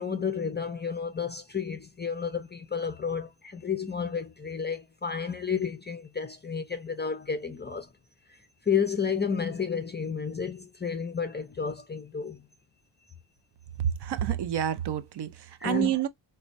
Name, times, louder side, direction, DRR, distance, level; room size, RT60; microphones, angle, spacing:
voice 1, 0.0-7.9 8.7-12.4 15.6-16.0, left 6 dB, 25° left, 0.4 m, -31 dB
voice 2, 13.8-16.1, right 10 dB, 55° right, 0.6 m, -28 dB
4.1 x 2.2 x 2.5 m
wide cardioid pair, 135°, 48 cm